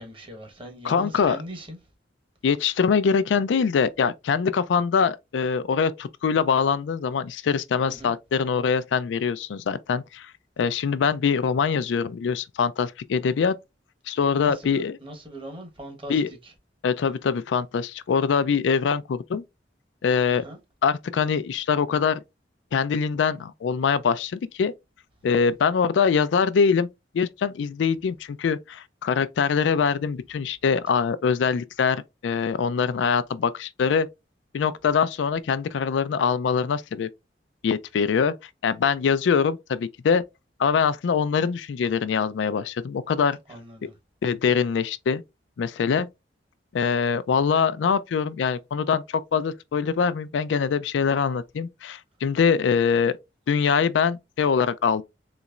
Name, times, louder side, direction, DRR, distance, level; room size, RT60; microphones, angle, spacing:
voice 1, 0.0-1.8 7.8-8.1 14.4-16.2 20.3-20.6 43.5-43.9, right 1 dB, 30° right, 1.1 m, -39 dB
voice 2, 0.8-1.4 2.4-13.6 14.1-15.0 16.1-16.3 16.8-19.4 20.0-20.4 20.8-22.2 22.7-24.7 25.2-26.9 27.1-34.1 34.5-37.1 37.6-38.3 38.6-40.2 40.6-43.4 44.2-45.2 45.6-46.1 46.7-53.2 53.5-55.0, left 6 dB, 80° left, 0.4 m, -23 dB
4.0 x 3.0 x 2.4 m
head